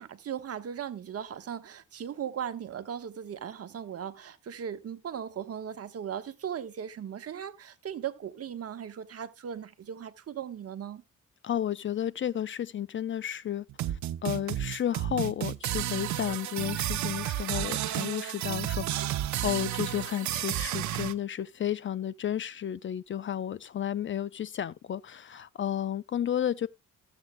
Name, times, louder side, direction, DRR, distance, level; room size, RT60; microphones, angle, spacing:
voice 1, 0.0-11.0, right 8 dB, 50° right, 1.3 m, -38 dB
voice 2, 11.4-26.7, left 10 dB, 40° left, 0.5 m, -32 dB
sound 1, 13.7-21.1, right 12 dB, 70° right, 0.8 m, -32 dB
14.5 x 8.1 x 2.2 m
cardioid pair, 90°, 30 cm